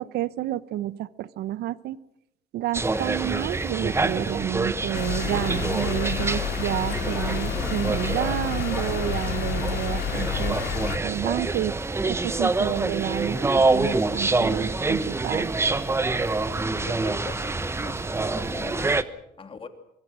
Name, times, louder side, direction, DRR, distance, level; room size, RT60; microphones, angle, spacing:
voice 1, 0.0-2.0 2.5-10.6 11.0-15.5, right 13 dB, 75° right, 17 dB, 0.8 m, -30 dB
sound 1, 2.7-19.0, right 3 dB, 15° right, 1.1 m, -26 dB
sound 2, 4.9-11.0, left 9 dB, 75° left, 3.3 m, -30 dB
voice 2, 16.5-19.7, left 5 dB, 30° left, 7 dB, 2.8 m, -41 dB
24.5 x 23.0 x 6.3 m, 0.84 s
cardioid pair, 110°, 17 cm